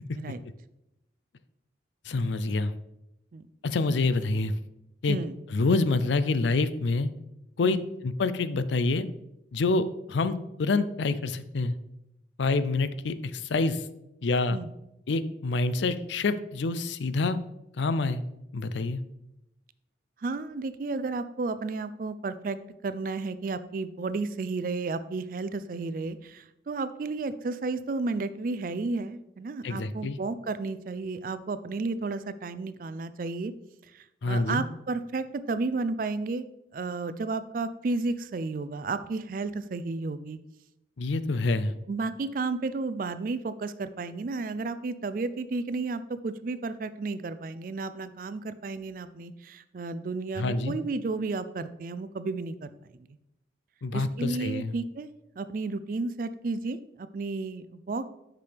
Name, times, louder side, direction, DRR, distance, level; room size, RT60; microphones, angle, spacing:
voice 1, 2.0-2.7 3.6-4.5 5.0-5.2 5.5-7.1 7.6-7.8 8.0-9.1 9.5-11.7 12.4-13.9 14.2-14.6 15.1-17.4 17.7-18.2 18.5-19.0 29.6-30.2 34.2-34.6 41.0-41.7 50.4-50.7 53.8-54.7, left 3 dB, 75° left, 13 dB, 0.5 m, -27 dB
voice 2, 20.2-22.6 22.8-33.5 33.9-36.5 36.7-40.4 41.9-53.1 53.9-58.1, right 3 dB, 45° right, 13 dB, 0.3 m, -32 dB
8.5 x 6.0 x 3.4 m, 0.88 s
head